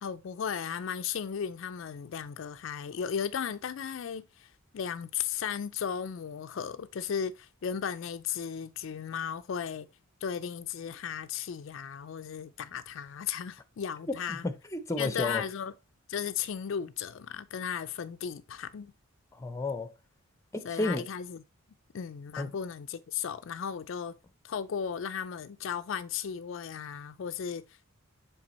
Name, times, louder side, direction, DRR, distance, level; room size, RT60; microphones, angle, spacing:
voice 1, 0.0-9.9 10.2-14.5 15.0-15.7 16.1-18.9 20.6-21.4 21.9-24.2 24.4-27.8, left 7 dB, 60° left, 0.4 m, -35 dB
voice 2, 14.3-15.4 19.3-19.9 20.5-21.1 22.4-22.6, left 2 dB, 15° left, 0.6 m, -32 dB
7.3 x 3.3 x 4.1 m
head